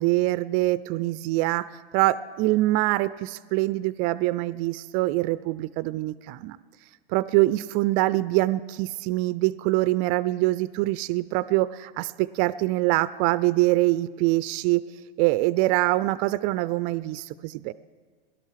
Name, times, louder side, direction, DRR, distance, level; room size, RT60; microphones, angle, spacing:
voice 1, 0.0-6.6 7.1-14.8 15.2-17.7, right 18 dB, 30° right, 16 dB, 0.3 m, -24 dB
18.0 x 12.0 x 5.8 m, 1.5 s
hypercardioid pair, 115°, 30 cm